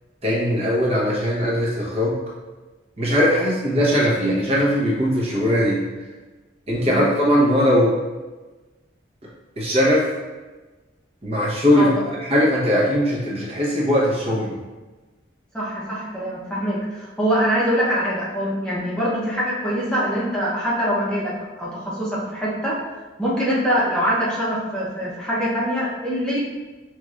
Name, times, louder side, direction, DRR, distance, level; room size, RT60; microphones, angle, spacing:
voice 1, 0.2-2.2 3.0-5.8 6.7-7.9 9.6-10.1 11.2-11.9 12.3-14.6, equal, 35° right, -5 dB, 0.8 m, -19 dB
voice 2, 11.7-12.1 15.5-22.8 23.2-26.4, equal, 5° left, -7 dB, 0.7 m, -24 dB
5.4 x 3.1 x 2.4 m, 1.2 s
head